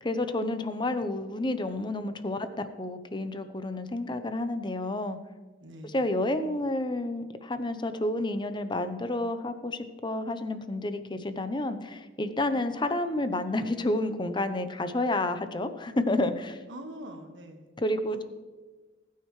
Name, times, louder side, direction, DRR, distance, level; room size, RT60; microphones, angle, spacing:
voice 1, 0.0-5.2 5.8-16.6 17.8-18.2, left 1 dB, 25° left, 10 dB, 0.7 m, -30 dB
voice 2, 5.6-5.9 16.7-17.7 18.1-18.2, right 1 dB, 80° right, 4 dB, 1.6 m, -43 dB
20.0 x 9.3 x 3.2 m, 1.3 s
head